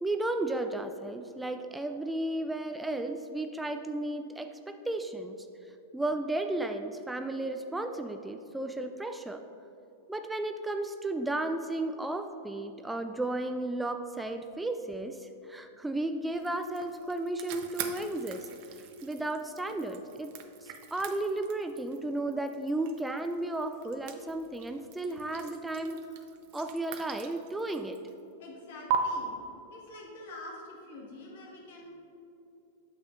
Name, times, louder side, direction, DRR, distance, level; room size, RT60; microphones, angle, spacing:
voice 1, 0.0-5.4 5.9-9.4 10.1-18.5 19.0-20.3 20.6-26.0 26.5-28.0, right 2 dB, 5° right, 6 dB, 0.3 m, -34 dB
sound 1, 16.3-28.2 28.9-29.0, right 10 dB, 50° right, 0.6 m, -42 dB
voice 2, 28.4-29.4 29.7-31.9, left 2 dB, 60° left, -2 dB, 1.6 m, -46 dB
8.9 x 6.6 x 2.6 m, 2.8 s
figure-of-eight pair, 95°, 0 cm